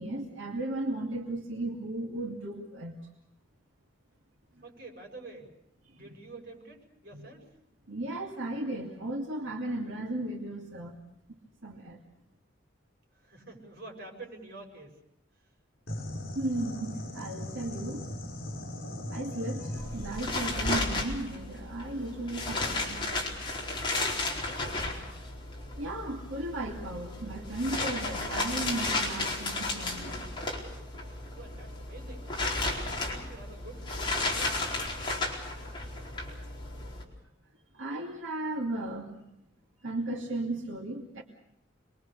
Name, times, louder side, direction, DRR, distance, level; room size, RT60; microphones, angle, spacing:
voice 1, 0.0-3.1 7.1-7.3 7.9-11.0 11.6-12.0 16.3-18.0 19.1-23.2 25.8-30.3 37.7-39.1 39.8-41.2, right 1 dB, 80° right, -1 dB, 2.6 m, -35 dB
voice 2, 4.6-5.5 5.9-7.6 13.1-15.0 15.3-15.5 24.3-25.3 31.4-32.3 32.8-34.7, right 2 dB, 50° right, 1 dB, 6.9 m, -48 dB
sound 1, 15.9-20.7, left 1 dB, 50° left, 7.9 m, -39 dB
sound 2, 19.7-37.0, left 2 dB, 25° left, 4.5 m, -34 dB
26.5 x 22.5 x 6.8 m, 0.83 s
head